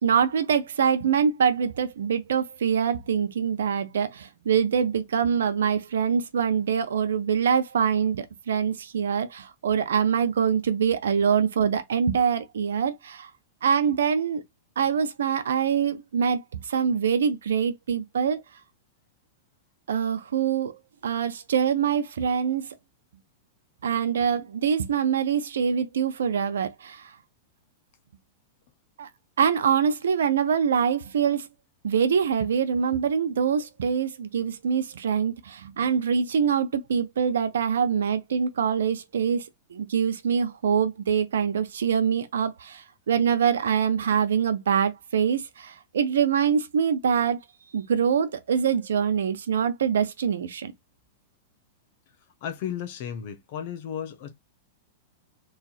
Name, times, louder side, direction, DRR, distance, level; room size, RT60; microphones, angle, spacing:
voice 1, 0.0-13.3 13.6-14.4 14.8-18.4 19.9-22.7 23.8-27.1 29.0-29.1 29.4-31.5 31.8-39.4 39.7-47.4 47.7-50.7, right 7 dB, 90° right, 0.7 m, -24 dB
voice 2, 52.4-54.3, left 9 dB, 55° left, 0.9 m, -34 dB
3.3 x 2.7 x 4.1 m
hypercardioid pair, 130°, 0 cm